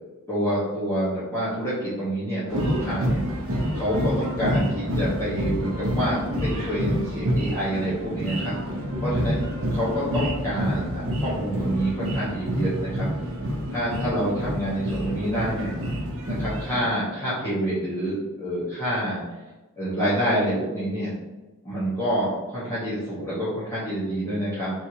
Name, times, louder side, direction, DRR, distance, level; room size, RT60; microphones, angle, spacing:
voice 1, 0.3-3.2 3.7-8.5 9.0-13.1 13.7-15.8 16.2-19.2 19.8-21.1 21.6-24.7, equal, 15° left, -11 dB, 1.2 m, -27 dB
sound 1, 2.5-16.8, equal, 65° right, 0.8 m, -28 dB
4.6 x 3.1 x 2.8 m, 1.1 s
head